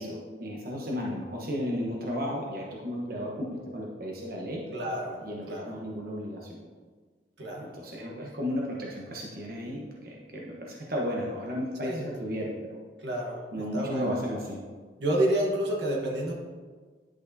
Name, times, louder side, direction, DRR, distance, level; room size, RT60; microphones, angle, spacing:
voice 1, 0.0-3.5 3.7-4.6 5.2-6.6 7.6-11.9 12.2-12.8 13.5-14.6, equal, 55° right, -3 dB, 1.1 m, -34 dB
voice 2, 4.7-5.8 7.4-7.7 8.2-8.4 11.8-12.1 13.0-14.2 15.0-16.3, right 1 dB, 80° right, -1 dB, 1.3 m, -30 dB
10.5 x 6.4 x 2.7 m, 1.5 s
head